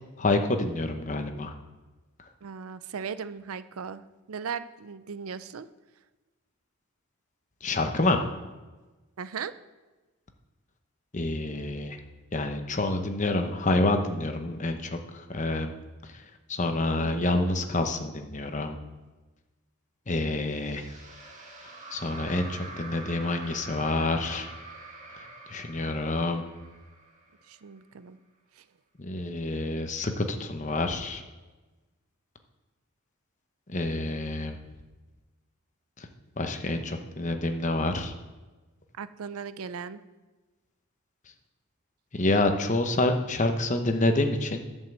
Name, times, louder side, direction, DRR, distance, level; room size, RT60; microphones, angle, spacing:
voice 1, 0.2-1.5 7.6-8.3 11.1-12.0 12.3-15.7 16.5-18.8 20.1-20.9 21.9-24.5 25.5-26.4 29.0-31.2 33.7-34.6 36.0-36.1 36.4-38.1 42.1-44.7, left 2 dB, 35° left, 6 dB, 0.9 m, -27 dB
voice 2, 2.4-5.7 9.2-9.5 17.0-17.6 27.5-28.2 28.6-28.7 39.0-40.0, right 6 dB, 85° right, 14 dB, 0.5 m, -38 dB
sound 1, 20.5-27.8, right 2 dB, 35° right, 2.0 m, -45 dB
11.0 x 5.5 x 7.4 m, 1.2 s
head